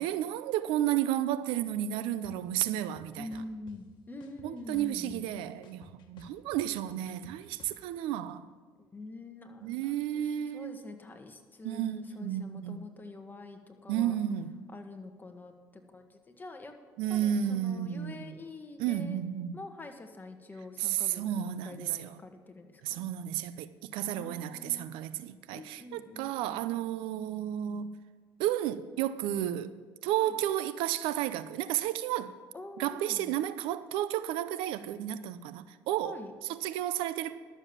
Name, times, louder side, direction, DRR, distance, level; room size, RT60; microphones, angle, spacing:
voice 1, 0.0-3.3 4.4-8.5 9.6-10.8 11.6-12.8 13.9-14.6 17.0-18.3 18.8-19.6 20.8-22.2 22.8-28.0 28.4-29.7 30.0-32.3 32.8-36.2 36.5-37.4, right 11 dB, 80° right, 0.6 m, -32 dB
sound 1, 2.2-2.3 2.8-3.8 4.2-5.3 5.6-7.8, left 4 dB, 60° left, 1.4 m, -54 dB
voice 2, 3.1-5.3 8.8-14.1 14.7-16.8 17.1-19.2 19.5-23.0 24.1-25.0 25.5-26.7 30.2-30.4 32.5-33.4 36.0-36.3, left 2 dB, 20° left, 1.6 m, -46 dB
12.0 x 7.1 x 7.2 m
supercardioid pair, 85°, 9 cm